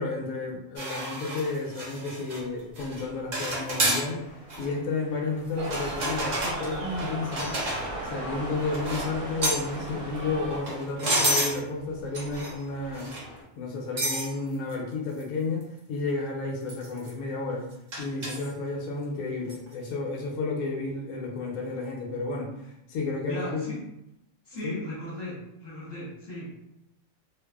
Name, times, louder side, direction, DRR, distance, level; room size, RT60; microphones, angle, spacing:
voice 1, 0.0-4.2 4.6-7.6 8.1-13.2 13.6-17.7 18.0-23.7 24.6-24.8, left 3 dB, 90° left, 0 dB, 1.0 m, -32 dB
sound 1, 0.8-2.4 2.8-3.0 3.3-4.1 4.5-4.7 5.6-8.0 8.7-9.1 9.4-9.7 10.5-11.6 12.1-12.6 12.9-13.3 14.0-14.3 14.7-14.8 15.2-15.3 15.6-15.7 16.7-17.1 17.9-18.5 19.5-19.7, right 1 dB, 60° right, 0.4 m, -30 dB
sound 2, 2.4-13.4, equal, 45° left, 0.7 m, -46 dB
sound 3, 5.6-10.6, right 2 dB, 75° right, 1.1 m, -36 dB
voice 2, 23.3-23.8 24.4-26.6, left 1 dB, 20° left, -8 dB, 1.0 m, -37 dB
2.5 x 2.3 x 2.2 m, 0.82 s
omnidirectional pair, 1.5 m